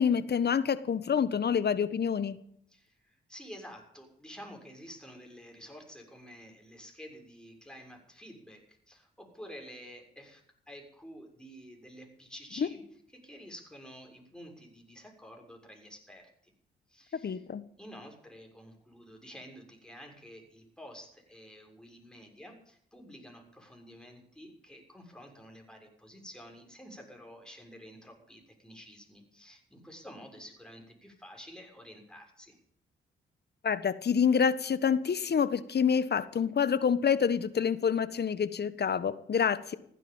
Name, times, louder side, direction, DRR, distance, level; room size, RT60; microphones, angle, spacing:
voice 1, 0.0-2.4 12.6-12.7 17.2-17.6 33.6-39.8, left 7 dB, 50° left, 14 dB, 1.4 m, -27 dB
voice 2, 2.7-12.8 13.1-16.5 16.9-17.4 17.8-32.6, equal, 5° left, 2 dB, 6.7 m, -50 dB
16.0 x 10.0 x 8.9 m, 0.66 s
hypercardioid pair, 45°, 21 cm